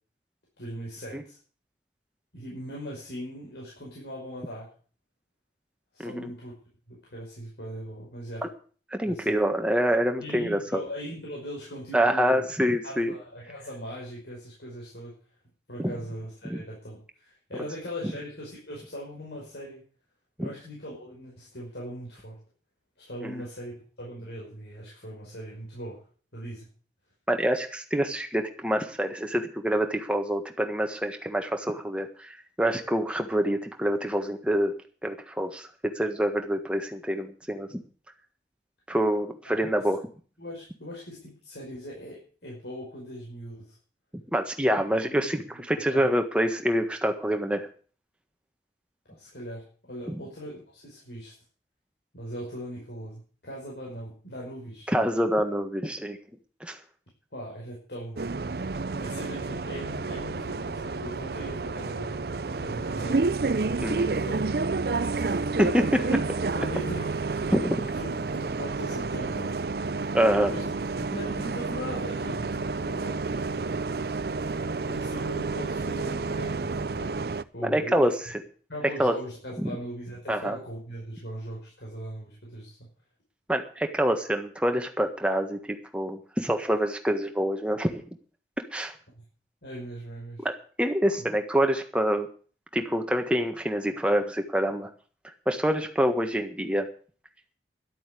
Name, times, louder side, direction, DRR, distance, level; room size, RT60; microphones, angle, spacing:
voice 1, 0.6-1.4 2.3-4.7 5.9-6.6 6.9-8.4 9.0-9.4 10.2-12.5 12.8-15.1 15.7-19.8 20.4-22.4 23.0-26.0 26.3-26.7 39.5-39.9 40.4-43.8 45.0-45.1 45.7-46.2 49.1-51.3 52.1-54.9 57.3-58.3 59.0-63.3 64.1-64.7 65.0-65.4 66.6-67.5 67.8-69.5 69.8-69.9 70.5-70.6 70.9-73.9 74.8-77.1 77.5-78.1 78.7-82.9 89.1-89.2 89.6-90.5 91.2-91.3, equal, 75° left, -4 dB, 5.5 m, -40 dB
voice 2, 8.9-10.8 11.9-13.1 15.8-15.9 16.4-16.6 20.4-20.5 23.2-23.4 27.3-34.7 35.0-35.7 35.9-37.8 38.9-40.0 44.3-47.7 50.1-50.2 54.9-56.2 56.6-56.8 63.8-64.1 65.6-66.2 67.5-67.8 70.1-70.5 77.6-78.4 79.0-79.1 79.6-79.7 80.3-80.6 83.5-85.6 85.9-88.0 88.7-88.9 90.4-90.5 90.8-92.3 92.7-94.9 95.5-96.9, equal, 5° right, 5 dB, 1.5 m, -26 dB
Bus, 58.2-77.4, right 3 dB, 60° right, 0.6 m, -30 dB
12.0 x 8.5 x 8.5 m, 0.41 s
head